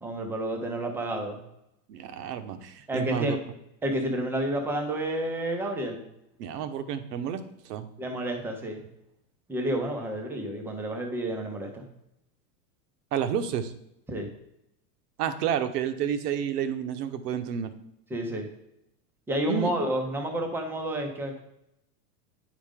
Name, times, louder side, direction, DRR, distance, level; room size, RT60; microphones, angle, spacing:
voice 1, 0.0-1.4 2.9-3.4 3.8-6.0 8.0-8.8 9.5-11.8 14.1-14.3 18.1-18.5 19.3-21.4, right 1 dB, 5° right, 3 dB, 0.5 m, -30 dB
voice 2, 1.9-3.4 6.4-7.9 13.1-13.7 15.2-17.7 19.5-19.7, right 9 dB, 75° right, 10 dB, 1.0 m, -30 dB
9.8 x 5.1 x 3.6 m, 0.83 s
supercardioid pair, 155°, 48 cm